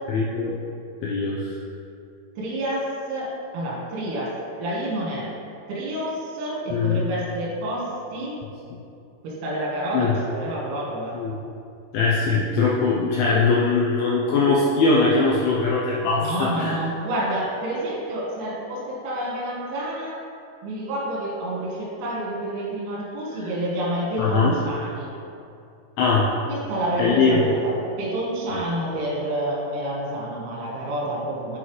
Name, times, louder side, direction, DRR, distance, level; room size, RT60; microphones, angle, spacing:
voice 1, 0.1-0.6 1.0-1.6 6.7-7.0 9.9-10.2 11.1-11.3 11.9-16.8 23.4-23.5 24.2-24.5 26.0-26.3 27.0-27.4 28.5-28.6, left 4 dB, 85° left, -5 dB, 2.6 m, -21 dB
voice 2, 2.4-4.3 4.6-5.3 5.7-8.4 9.2-11.2 16.2-20.2 20.6-25.1 26.5-31.6, right 1 dB, 90° right, -4 dB, 4.1 m, -28 dB
11.0 x 3.9 x 3.1 m, 2.6 s
omnidirectional pair, 6.0 m